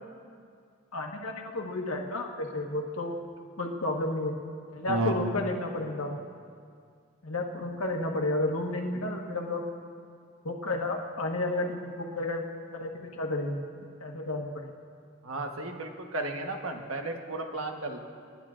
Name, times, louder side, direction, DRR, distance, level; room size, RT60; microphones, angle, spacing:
voice 1, 0.9-3.2 3.6-4.3 4.7-6.2 7.2-9.6 10.4-12.4 12.7-13.6 14.0-14.7, left 2 dB, 85° left, 1 dB, 1.4 m, -31 dB
voice 2, 4.9-5.3 15.2-18.0, right 2 dB, 80° right, 3 dB, 1.2 m, -33 dB
28.0 x 10.5 x 2.5 m, 2.2 s
head